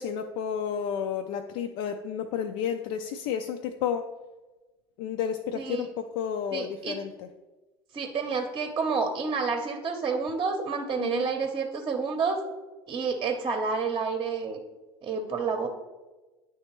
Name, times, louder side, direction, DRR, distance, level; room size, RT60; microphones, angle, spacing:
voice 1, 0.0-4.1 5.0-7.3 11.0-11.3, left 8 dB, 65° left, 6 dB, 0.4 m, -31 dB
voice 2, 5.5-5.9 6.5-7.0 7.9-12.4 12.9-14.6 15.0-15.7, right 5 dB, 35° right, 4 dB, 0.7 m, -29 dB
9.2 x 3.4 x 3.0 m, 1.2 s
hypercardioid pair, 80°, 13 cm